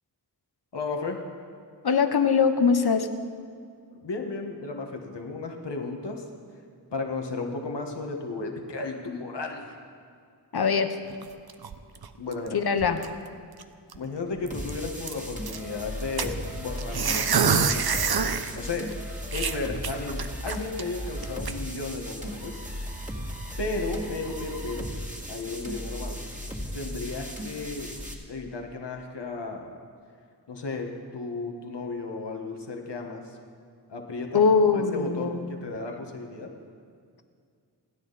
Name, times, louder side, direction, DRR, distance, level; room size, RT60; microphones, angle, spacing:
voice 1, 0.7-1.2 4.0-6.3 6.9-9.8 12.2-12.6 13.9-18.2 18.5-18.9 19.3-22.6 23.6-24.9 25.3-26.2 26.7-27.9 28.3-29.7 30.5-33.4 33.9-36.5, left 3 dB, 80° left, 2 dB, 1.7 m, -34 dB
voice 2, 1.8-3.1 10.5-11.0 12.5-13.0 34.3-35.7, left 5 dB, 65° left, 8 dB, 1.1 m, -22 dB
sound 1, 11.1-12.5 12.8-13.3 13.6-13.7 13.9-14.1 14.4-15.6 16.2-18.5 18.9-19.0 19.3-20.8 21.2-21.5, right 6 dB, 60° right, 0.8 m, -27 dB
sound 2, 14.5-28.1, equal, 20° right, 2.4 m, -36 dB
28.5 x 9.9 x 4.2 m, 2.2 s
wide cardioid pair, 55°, 42 cm